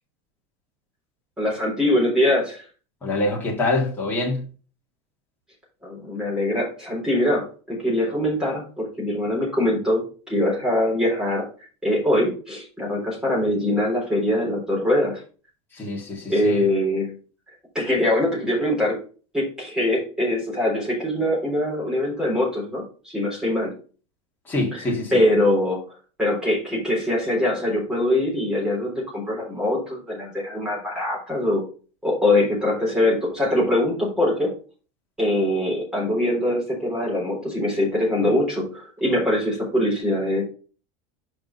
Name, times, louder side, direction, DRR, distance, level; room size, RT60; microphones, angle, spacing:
voice 1, 1.4-2.6 5.8-11.5 11.8-15.2 16.3-17.1 17.7-19.0 19.3-23.7 24.7-25.8 26.2-31.6 32.0-34.5 35.2-40.4, left 1 dB, 5° right, 3.8 m, -23 dB
voice 2, 3.0-4.4 15.7-16.6 24.5-25.1, left 2 dB, 10° left, 1.9 m, -25 dB
5.9 x 5.1 x 5.4 m
cardioid pair, 175°, 16 cm